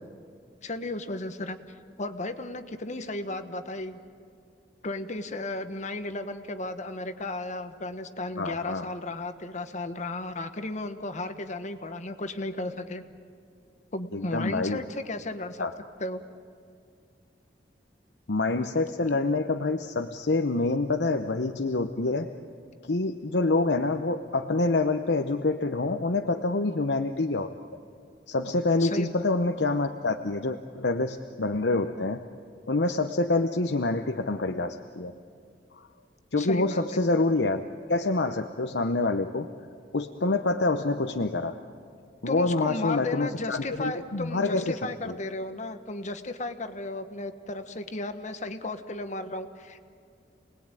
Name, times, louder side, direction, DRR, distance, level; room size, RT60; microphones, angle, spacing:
voice 1, 0.6-1.6 2.0-4.0 4.8-13.0 13.9-15.7 16.0-16.2 28.8-29.2 36.4-37.0 42.3-49.8, left 2 dB, 45° left, 8 dB, 1.3 m, -34 dB
voice 2, 8.4-8.9 14.1-14.8 15.6-15.7 18.3-22.3 22.9-27.5 28.3-32.2 32.7-35.1 36.3-37.6 37.9-39.5 39.9-41.6 42.2-44.8 45.0-45.2, left 2 dB, 75° left, 5 dB, 0.9 m, -26 dB
29.0 x 20.0 x 9.0 m, 2.4 s
head